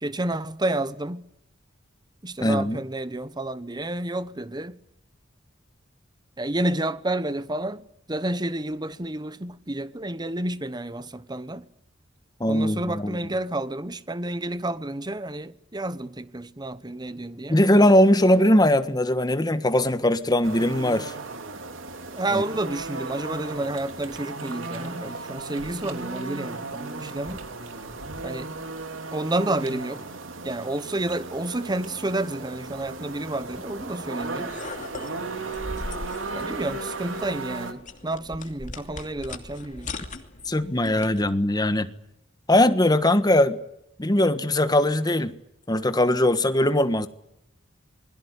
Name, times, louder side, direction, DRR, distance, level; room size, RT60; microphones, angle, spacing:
voice 1, 0.0-1.2 2.2-4.8 6.4-11.7 12.5-17.6 22.1-27.4 28.2-28.5 29.1-30.0 30.4-34.5 36.3-39.9, right 1 dB, 20° right, 1.2 m, -30 dB
voice 2, 2.4-2.8 12.4-13.2 17.5-21.1 22.3-22.4 40.4-41.9 42.5-43.6 44.0-45.3 45.7-47.1, left 1 dB, 20° left, 1.5 m, -20 dB
sound 1, 20.4-37.7, right 3 dB, 85° right, 3.2 m, -36 dB
sound 2, 34.2-41.3, left 2 dB, 40° left, 2.8 m, -39 dB
28.0 x 21.5 x 8.3 m
head